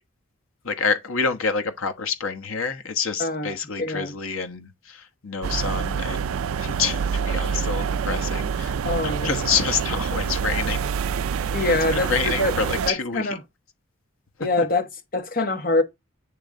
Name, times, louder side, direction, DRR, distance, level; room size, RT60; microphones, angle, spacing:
voice 1, 0.6-8.7 9.0-10.8 11.7-13.4, left 5 dB, 75° left, 1.1 m, -27 dB
voice 2, 3.2-4.1 8.8-9.3 11.5-12.6 12.9-13.4 14.4-15.8, left 2 dB, 40° left, 1.1 m, -25 dB
sound 1, 5.4-12.9, right 6 dB, 80° right, 0.3 m, -26 dB
8.6 x 3.2 x 3.7 m
head